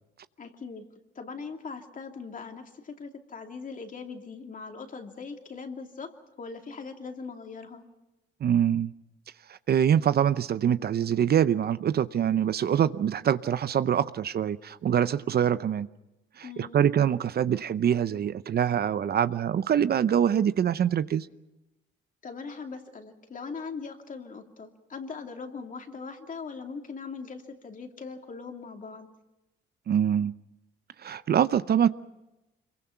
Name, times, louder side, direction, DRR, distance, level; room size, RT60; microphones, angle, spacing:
voice 1, 0.4-0.9 1.1-7.8 16.4-16.8 22.2-29.1, left 5 dB, 40° left, 2.8 m, -40 dB
voice 2, 8.4-8.9 9.7-15.9 16.4-21.3 29.9-30.3 31.0-31.9, right 9 dB, 55° right, 0.7 m, -24 dB
26.0 x 23.0 x 5.8 m
cardioid pair, 90°, 20 cm